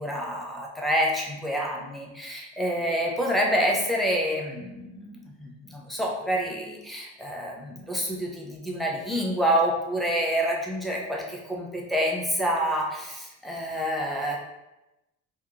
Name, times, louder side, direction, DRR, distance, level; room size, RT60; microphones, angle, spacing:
voice 1, 0.0-14.4, equal, ahead, -2 dB, 0.7 m, -27 dB
2.9 x 2.4 x 3.9 m, 0.97 s
cardioid pair, 90°, 30 cm